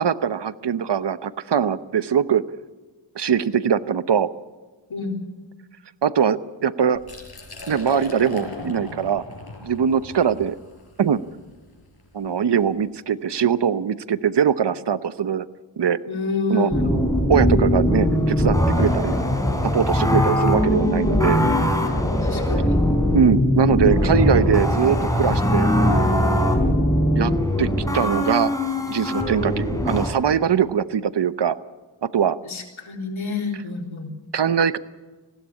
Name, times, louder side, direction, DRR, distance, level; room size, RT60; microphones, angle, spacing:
voice 1, 0.0-2.4 3.1-4.3 6.0-7.0 7.7-9.2 9.6-10.6 11.0-11.2 12.1-15.4 15.8-16.0 16.5-16.7 17.3-19.2 19.6-21.4 23.1-25.7 27.1-27.3 27.6-27.7 27.9-28.5 28.9-31.6 32.0-32.4 34.3-34.8, right 7 dB, 60° right, 14 dB, 0.9 m, -21 dB
Liquid, 6.9-12.7, left 3 dB, 55° left, 5.4 m, -38 dB
voice 2, 16.1-16.9 22.2-22.8 32.4-34.1, left 4 dB, 90° left, 1 dB, 3.8 m, -28 dB
sound 1, 16.7-30.1, left 1 dB, 5° left, 4.7 m, -20 dB
19.5 x 16.0 x 8.4 m, 1.3 s
wide cardioid pair, 60°, 47 cm